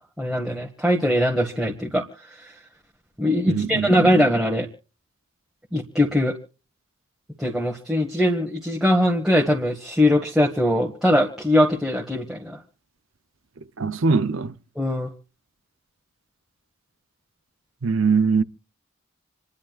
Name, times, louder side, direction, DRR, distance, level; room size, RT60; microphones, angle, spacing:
voice 1, 0.2-2.0 2.4-2.5 3.2-4.7 5.7-6.3 7.4-12.6 14.7-15.1, left 1 dB, ahead, 1.7 m, -21 dB
voice 2, 3.5-4.1 13.8-14.5 17.8-18.4, right 4 dB, 65° right, 0.7 m, -22 dB
28.0 x 11.5 x 2.4 m
head